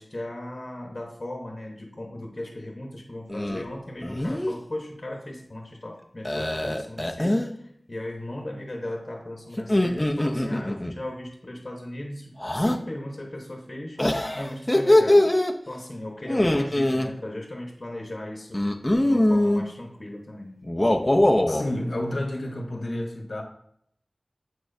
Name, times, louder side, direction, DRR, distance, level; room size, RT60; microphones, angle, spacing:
voice 1, 0.0-15.4 15.7-18.6 19.0-20.7, left 1 dB, 50° left, 0 dB, 1.0 m, -37 dB
sound 1, 3.3-3.6 4.0-4.5 6.2-7.5 9.6-10.9 12.4-12.8 14.0-15.5 16.2-17.1 18.5-19.6 20.6-21.6, left 1 dB, 20° left, 0.6 m, -22 dB
voice 2, 21.5-23.4, left 1 dB, 75° left, 3 dB, 0.9 m, -30 dB
8.6 x 4.5 x 2.6 m, 0.69 s
wide cardioid pair, 55°, 0 cm